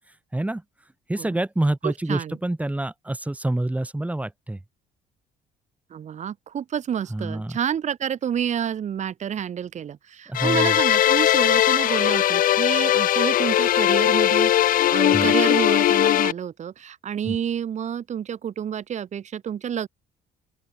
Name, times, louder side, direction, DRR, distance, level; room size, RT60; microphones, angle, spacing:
voice 1, 1.1-4.6 7.1-7.6 10.3-10.7 15.1-15.3 17.2-17.4, right 1 dB, 10° right, 3.3 m, -27 dB
voice 2, 1.8-2.4 5.9-19.9, right 8 dB, 45° right, 1.5 m, -29 dB
sound 1, 10.4-16.3, left 12 dB, 55° left, 0.7 m, -19 dB
open air
cardioid pair, 110°, 17 cm